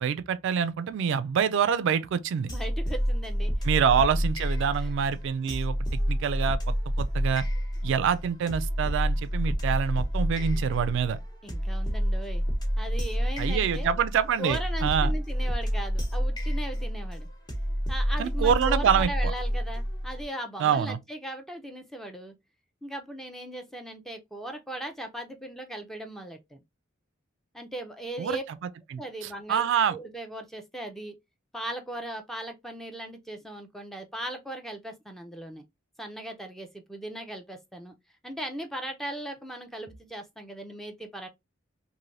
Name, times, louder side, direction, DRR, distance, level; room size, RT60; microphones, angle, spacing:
voice 1, 0.0-2.5 3.6-7.4 7.8-11.2 13.4-15.1 18.2-19.3 20.6-21.0 28.2-28.4 28.9-30.0, right 7 dB, 65° right, 0.3 m, -26 dB
voice 2, 2.4-3.5 4.8-4.9 11.4-12.4 12.8-13.9 14.4-17.3 17.9-22.3 22.8-26.6 27.5-28.4 29.0-31.2 31.5-35.7 36.0-37.9 38.2-41.3, right 1 dB, ahead, 0.4 m, -38 dB
sound 1, 2.5-20.2, equal, 20° left, 0.9 m, -29 dB
3.2 x 2.6 x 2.5 m
head